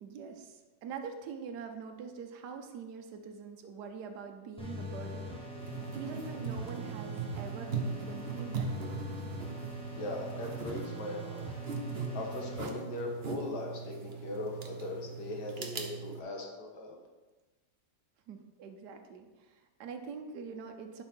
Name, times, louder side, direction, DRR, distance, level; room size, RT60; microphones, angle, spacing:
voice 1, 0.0-5.4 5.9-9.0 18.3-21.0, right 5 dB, 70° right, 5 dB, 1.4 m, -44 dB
sound 1, 4.6-12.6, equal, 5° left, 0.9 m, -43 dB
sound 2, 5.6-16.2, right 4 dB, 45° right, 0.9 m, -39 dB
voice 2, 9.9-11.5 12.1-17.0, left 2 dB, 70° left, 0 dB, 2.0 m, -39 dB
11.0 x 4.8 x 4.5 m, 1.2 s
omnidirectional pair, 1.9 m